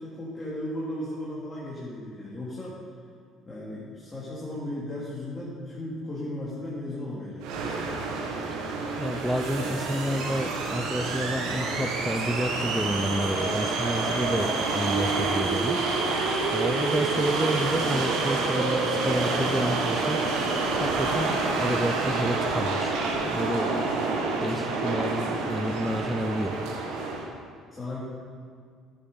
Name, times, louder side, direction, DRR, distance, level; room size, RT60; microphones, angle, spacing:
voice 1, 0.0-2.8 3.5-7.6 27.7-28.0, left 1 dB, 20° left, -7 dB, 2.9 m, -35 dB
sound 1, 7.4-27.3, right 3 dB, 80° right, 1.7 m, -28 dB
voice 2, 9.0-16.2 16.5-20.5 20.8-23.0 23.3-26.5, equal, ahead, 11 dB, 0.6 m, -30 dB
11.0 x 8.8 x 5.4 m, 2.1 s
supercardioid pair, 90°, 0 cm